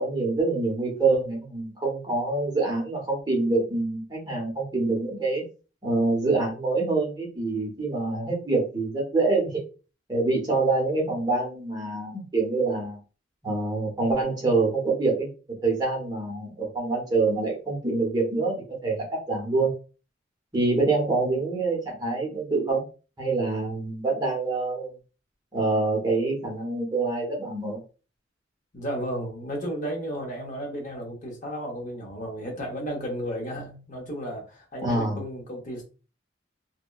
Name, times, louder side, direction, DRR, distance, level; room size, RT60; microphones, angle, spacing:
voice 1, 0.0-5.4 5.8-9.6 10.1-13.0 13.4-15.3 15.6-19.7 20.5-22.8 23.2-24.9 25.5-27.8 34.8-35.2, right 3 dB, 20° right, -2 dB, 0.8 m, -26 dB
voice 2, 28.7-35.8, equal, 40° left, 1 dB, 0.7 m, -33 dB
2.7 x 2.1 x 2.2 m, 0.34 s
head